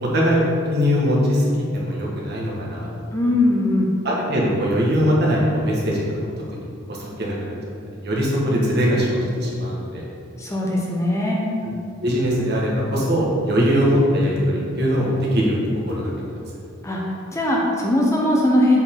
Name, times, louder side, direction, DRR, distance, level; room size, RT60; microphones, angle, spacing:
voice 1, 0.0-3.1 4.0-6.0 6.5-7.5 8.0-10.0 12.0-15.6 15.9-16.4, equal, 55° right, -4 dB, 1.5 m, -21 dB
voice 2, 3.1-3.9 10.4-11.4 16.8-18.8, left 1 dB, 15° left, -2 dB, 0.7 m, -20 dB
7.6 x 4.7 x 3.7 m, 2.5 s
head